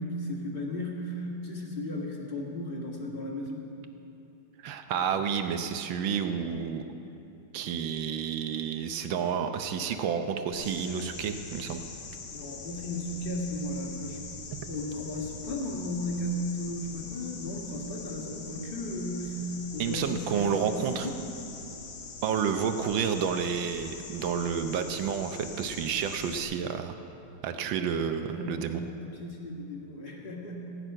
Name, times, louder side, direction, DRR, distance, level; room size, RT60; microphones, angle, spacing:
voice 1, 0.0-3.7 12.3-14.2 14.6-19.4 19.7-21.2 27.7-27.8 28.3-28.6 29.0-30.8, left 1 dB, 25° left, -1 dB, 1.6 m, -35 dB
voice 2, 4.6-6.8 7.5-11.8 19.8-21.1 22.2-27.0 27.4-28.8, right 7 dB, 70° right, 7 dB, 1.3 m, -30 dB
sound 1, 10.5-26.4, left 4 dB, 65° left, 1.9 m, -43 dB
16.0 x 6.1 x 9.0 m, 2.9 s
omnidirectional pair, 2.4 m